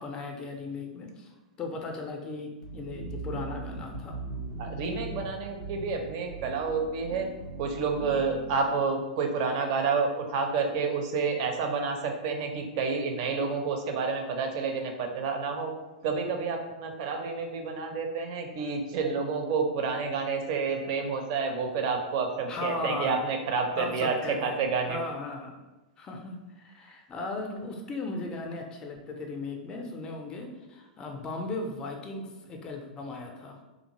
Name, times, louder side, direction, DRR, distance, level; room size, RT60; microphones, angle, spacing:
voice 1, 0.0-4.1 22.5-23.2 23.8-25.6 26.0-33.6, left 3 dB, 20° left, 3 dB, 0.4 m, -37 dB
sound 1, 2.6-8.6, right 3 dB, 85° right, 0.8 m, -39 dB
voice 2, 4.6-7.3 7.6-15.7 16.0-24.2 24.4-25.0, right 4 dB, 45° right, 4 dB, 0.5 m, -29 dB
2.6 x 2.4 x 2.8 m, 1.1 s
figure-of-eight pair, 95°, 4 cm